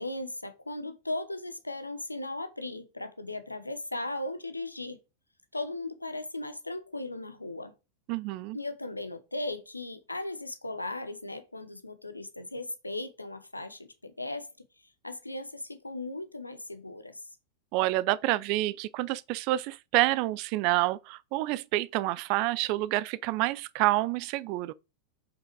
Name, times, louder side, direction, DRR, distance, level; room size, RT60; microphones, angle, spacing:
voice 1, 0.0-5.0 5.5-7.7 8.5-14.5 15.0-17.2, left 2 dB, 85° left, 1.1 m, -37 dB
voice 2, 8.1-8.6 17.7-24.7, right 17 dB, 45° right, 0.4 m, -28 dB
7.8 x 5.6 x 4.7 m
figure-of-eight pair, 90°, 0 cm